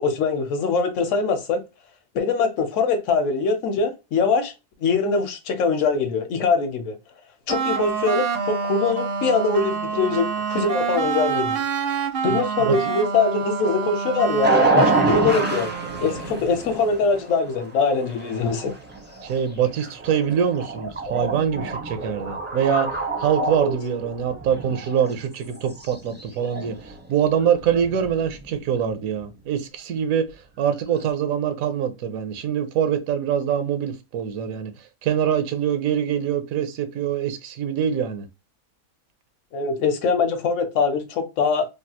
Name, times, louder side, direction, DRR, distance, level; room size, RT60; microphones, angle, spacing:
voice 1, 0.0-1.6 2.1-4.5 4.8-7.0 7.5-11.6 12.2-15.7 16.0-18.7 23.6-23.7 39.5-41.7, left 4 dB, 70° left, 1.0 m, -22 dB
sound 1, 7.5-16.3, right 6 dB, 60° right, 0.6 m, -27 dB
voice 2, 12.3-12.8 19.2-22.9 23.2-38.3, right 8 dB, 80° right, 1.1 m, -24 dB
sound 2, 14.4-25.2 25.5-28.6, right 3 dB, 15° right, 0.4 m, -28 dB
3.3 x 2.3 x 2.7 m
omnidirectional pair, 1.4 m